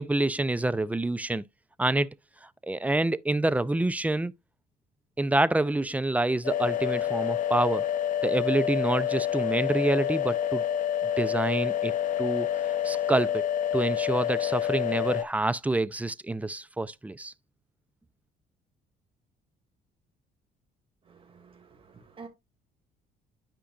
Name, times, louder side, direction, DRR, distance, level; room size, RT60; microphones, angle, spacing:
voice 1, 0.0-1.4 1.8-2.1 2.7-4.3 5.2-7.8 8.2-10.6 11.2-11.9 12.2-12.5 12.8-13.4 13.7-17.3, right 2 dB, 10° right, 0.4 m, -27 dB
sound 1, 6.4-15.2, left 10 dB, 50° left, 0.9 m, -28 dB
voice 2, 21.1-22.3, right 4 dB, 30° right, 2.3 m, -49 dB
11.5 x 5.1 x 2.4 m
cardioid pair, 110°, 17 cm